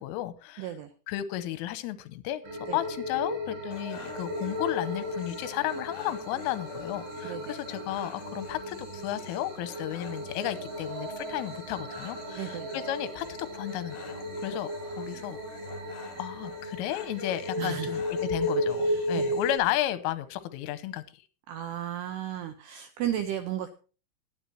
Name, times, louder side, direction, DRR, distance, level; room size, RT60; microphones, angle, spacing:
voice 1, 0.0-0.7 1.1-15.4 16.2-21.2, left 14 dB, 85° left, 14 dB, 3.4 m, -33 dB
voice 2, 0.6-0.9 2.7-2.8 7.2-7.6 12.3-12.7 17.6-17.9 18.8-19.2 21.5-23.7, right 11 dB, 85° right, 9 dB, 2.3 m, -34 dB
sound 1, 2.4-19.6, equal, 55° right, 4.5 m, -35 dB
sound 2, 3.7-19.7, left 5 dB, 60° left, 4.1 m, -47 dB
20.5 x 9.2 x 2.8 m, 0.35 s
omnidirectional pair, 5.8 m